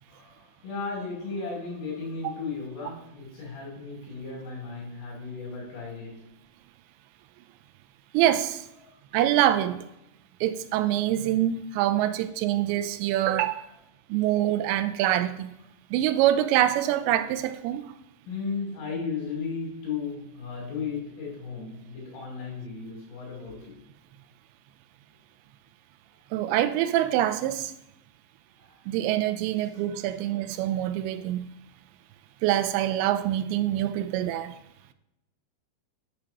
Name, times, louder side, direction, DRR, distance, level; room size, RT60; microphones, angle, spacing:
voice 1, 0.1-6.3 8.8-8.9 18.3-23.8 28.6-28.7, left 5 dB, 85° left, 4.6 m, -35 dB
voice 2, 8.1-8.6 9.1-9.8 10.4-13.6 14.1-15.5 15.9-17.9 26.3-27.7 28.9-31.5 32.4-34.5, right 12 dB, 90° right, 2.8 m, -25 dB
8.7 x 6.8 x 2.9 m
omnidirectional pair, 5.0 m